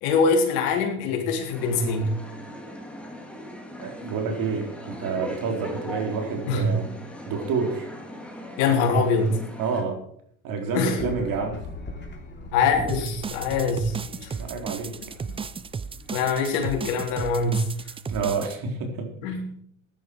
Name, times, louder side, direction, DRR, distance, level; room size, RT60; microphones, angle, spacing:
voice 1, 0.0-2.1 6.5-6.7 8.6-9.4 10.7-11.0 12.5-14.0 14.2-14.3 15.3-15.4 16.1-17.7 19.2-19.5, left 4 dB, 65° left, 2 dB, 3.7 m, -23 dB
sound 1, 1.5-9.8, left 1 dB, 5° left, 2.9 m, -39 dB
voice 2, 3.8-6.9 7.3-7.9 9.6-10.0 10.4-11.6 14.4-14.9 18.1-19.0, right 5 dB, 50° right, 3 dB, 4.2 m, -28 dB
sound 2, 11.0-17.9, left 3 dB, 25° left, 3.5 m, -41 dB
sound 3, 12.9-18.5, right 5 dB, 15° right, 0.5 m, -34 dB
15.0 x 11.0 x 4.9 m, 0.65 s
supercardioid pair, 100°, 41 cm